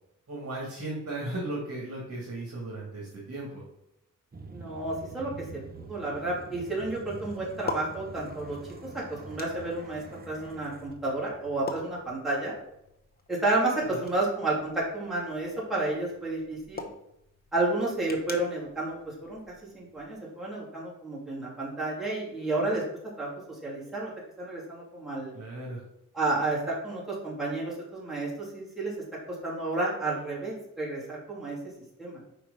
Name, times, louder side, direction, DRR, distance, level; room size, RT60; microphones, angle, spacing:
voice 1, 0.3-3.6 13.8-14.1 25.3-25.8, right 2 dB, 50° right, -3 dB, 1.8 m, -36 dB
sound 1, 4.3-12.5, right 3 dB, 30° right, 0.6 m, -46 dB
voice 2, 4.5-5.5 5.7-8.6 8.9-12.6 13.3-16.9 17.5-19.4 19.7-22.8 23.2-24.1 24.4-25.3 26.1-28.9 29.3-31.6 32.0-32.2, right 2 dB, ahead, -7 dB, 2.6 m, -31 dB
sound 2, 4.9-20.1, left 3 dB, 30° left, 0.8 m, -45 dB
5.2 x 4.5 x 5.2 m, 0.82 s
wide cardioid pair, 105°, 32 cm